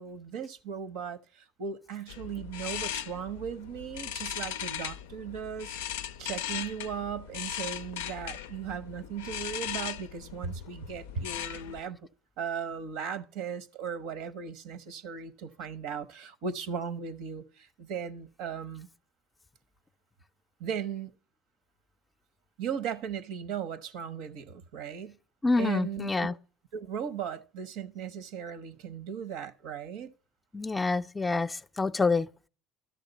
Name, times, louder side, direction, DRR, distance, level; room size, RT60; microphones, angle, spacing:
voice 1, 0.0-5.8 6.2-12.0 12.4-18.9 20.6-21.1 22.6-25.2 25.6-26.4 26.7-30.1, right 7 dB, 75° right, 0.8 m, -37 dB
sound 1, 2.1-11.8, left 11 dB, 90° left, 0.4 m, -38 dB
voice 2, 25.4-26.3 30.5-32.3, left 3 dB, 20° left, 0.5 m, -27 dB
12.5 x 6.5 x 4.0 m
hypercardioid pair, 80°, 0 cm